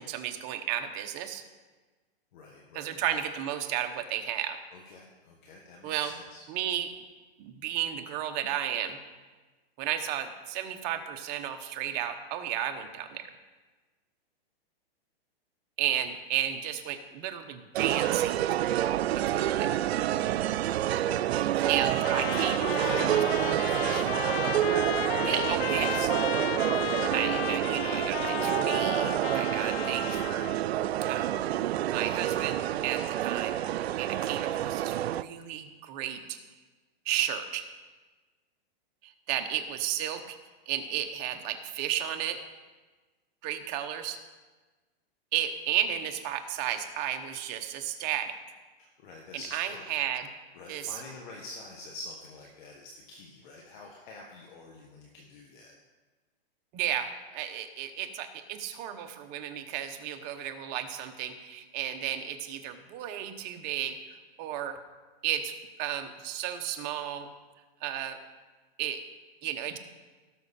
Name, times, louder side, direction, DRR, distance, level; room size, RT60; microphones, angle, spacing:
voice 1, 0.0-1.4 2.7-4.6 5.8-6.1 6.5-6.9 7.4-9.0 9.8-13.3 15.8-18.9 19.2-19.8 21.7-22.9 25.2-26.1 27.1-30.5 31.1-31.4 31.9-36.4 37.0-37.6 39.0-40.4 40.7-42.4 43.4-44.2 45.3-48.3 49.5-50.3 50.7-51.0 56.7-64.8 65.2-67.3 67.8-68.2 68.8-69.0 69.4-69.8, right 10 dB, 30° right, 7 dB, 0.9 m, -33 dB
voice 2, 2.3-3.2 3.5-3.6 4.7-6.4 20.9-24.2 48.8-49.9 50.5-55.7, left 2 dB, 50° left, -1 dB, 1.7 m, -46 dB
sound 1, 17.8-35.2, right 12 dB, 85° right, 0.5 m, -28 dB
Trumpet, 22.0-30.6, left 12 dB, 70° left, 0.6 m, -34 dB
17.5 x 6.3 x 4.3 m, 1.3 s
hypercardioid pair, 155°, 31 cm